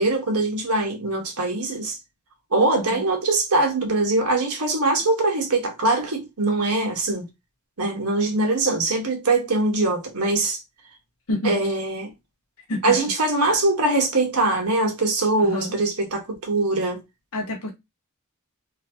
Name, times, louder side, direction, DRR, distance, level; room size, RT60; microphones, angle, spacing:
voice 1, 0.0-2.0 2.5-7.2 7.8-10.6 11.4-12.1 12.8-17.0, right 2 dB, 80° right, 1.2 m, -22 dB
voice 2, 15.4-15.7 17.3-17.7, left 1 dB, 75° left, 1.1 m, -27 dB
3.0 x 2.7 x 2.6 m
head